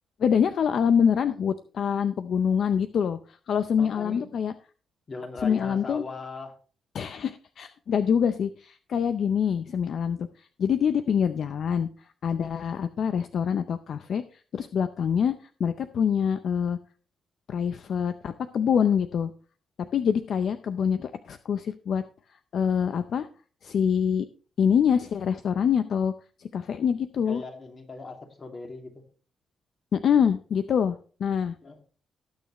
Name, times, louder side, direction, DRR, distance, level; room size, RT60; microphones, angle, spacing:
voice 1, 0.2-4.5 5.4-6.0 6.9-11.9 12.2-14.2 14.5-15.3 15.6-16.8 17.5-19.3 19.9-22.0 22.5-23.3 23.6-24.3 24.6-26.1 26.4-27.4 29.9-31.5, left 7 dB, 60° left, 10 dB, 0.6 m, -25 dB
voice 2, 3.8-4.3 5.1-6.6 27.2-29.0 31.6-31.9, left 3 dB, 35° left, 3 dB, 2.4 m, -39 dB
19.0 x 6.5 x 3.1 m, 0.38 s
cardioid pair, 125°, 0 cm